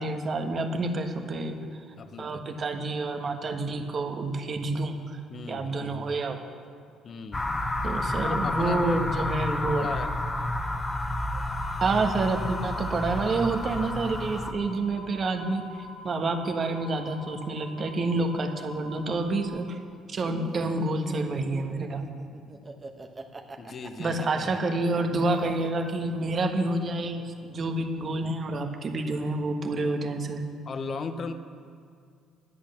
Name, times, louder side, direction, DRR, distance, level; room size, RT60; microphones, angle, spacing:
voice 1, 0.0-1.6 2.2-5.2 5.5-6.4 7.8-9.9 11.8-19.8 20.1-22.0 24.0-30.4, right 2 dB, 45° right, 5 dB, 1.3 m, -28 dB
voice 2, 2.0-2.4 5.3-6.2 7.0-7.5 8.2-9.1 9.5-10.1 11.3-11.6 23.6-24.6 30.7-31.3, left 4 dB, 50° left, 9 dB, 0.9 m, -37 dB
sound 1, 7.3-14.5, left 1 dB, 25° left, 1.1 m, -30 dB
sound 2, 11.5-19.5, left 2 dB, 85° left, 0.8 m, -46 dB
Laughter, 20.3-26.3, right 3 dB, 30° right, 1.2 m, -42 dB
11.0 x 8.3 x 6.5 m, 2.3 s
hypercardioid pair, 60°, 0 cm